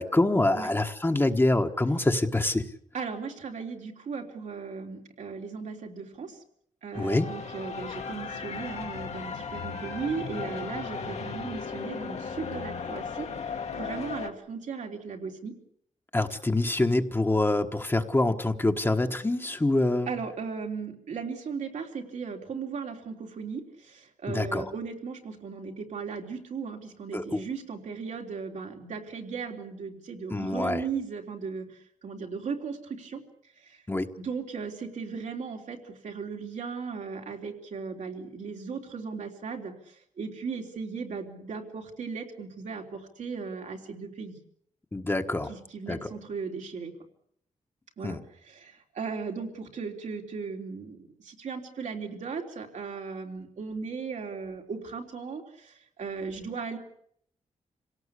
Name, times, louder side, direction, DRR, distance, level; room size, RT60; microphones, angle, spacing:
voice 1, 0.0-2.6 6.9-7.3 16.1-20.1 24.3-24.7 27.1-27.4 30.3-30.8 33.9-34.1 44.9-45.5 45.9-46.1 48.0-48.2, left 2 dB, 20° left, 5 dB, 1.4 m, -25 dB
voice 2, 2.9-6.4 6.8-15.5 20.1-33.2 33.6-33.8 34.2-44.4 45.5-46.9 48.0-56.8, right 5 dB, 80° right, 2 dB, 3.6 m, -37 dB
sound 1, 6.9-14.3, left 5 dB, 65° left, 1.9 m, -36 dB
26.5 x 18.0 x 8.4 m, 0.70 s
cardioid pair, 85°, 12 cm